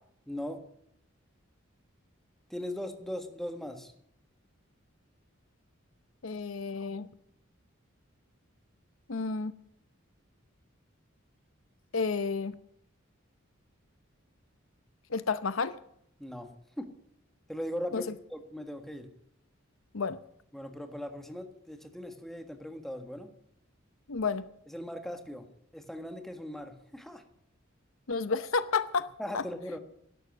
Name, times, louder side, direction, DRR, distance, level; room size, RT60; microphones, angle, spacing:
voice 1, 0.3-0.7 2.5-3.9 16.2-16.9 17.5-19.1 20.5-23.3 24.7-25.5 25.7-27.2 29.2-29.8, left 1 dB, ahead, 6 dB, 1.6 m, -39 dB
voice 2, 6.2-7.1 9.1-9.5 11.9-12.5 15.1-15.8 17.9-18.0 19.9-20.2 24.1-24.4 28.1-29.1 29.3-29.4, left 4 dB, 75° left, 14 dB, 0.8 m, -30 dB
12.0 x 11.5 x 7.2 m, 0.73 s
head